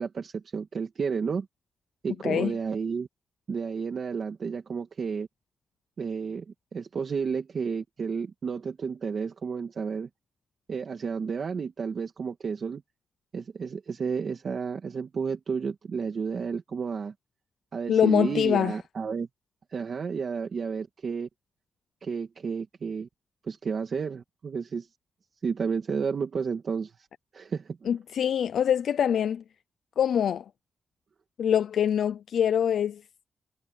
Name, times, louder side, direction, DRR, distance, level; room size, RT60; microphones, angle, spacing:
voice 1, 0.0-1.5 2.0-3.1 3.5-5.3 6.0-10.1 10.7-12.8 13.3-17.1 17.7-19.3 19.7-21.3 22.0-23.1 23.4-24.9 25.4-26.9 27.3-27.9, right 5 dB, 45° right, 2.1 m, -31 dB
voice 2, 17.9-18.8 27.9-29.4 30.0-30.4 31.4-33.0, left 9 dB, 80° left, 0.5 m, -24 dB
wide cardioid pair, 165°, 0 cm